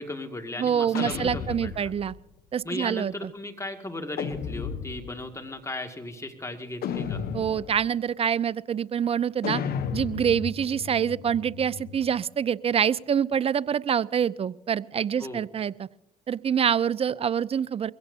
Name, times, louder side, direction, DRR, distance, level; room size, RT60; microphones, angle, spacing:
voice 1, 0.0-1.9 2.6-7.2 15.2-15.5, left 2 dB, 15° left, 5 dB, 2.2 m, -36 dB
voice 2, 0.6-2.1 2.5-3.3 7.3-9.6 9.9-15.9 16.3-17.9, right 8 dB, 35° right, 23 dB, 0.4 m, -26 dB
sound 1, 0.9-2.2 4.2-5.3 6.8-7.9 9.4-12.1, left 7 dB, 65° left, 1.0 m, -34 dB
22.0 x 16.5 x 2.8 m, 0.92 s
supercardioid pair, 55°, 17 cm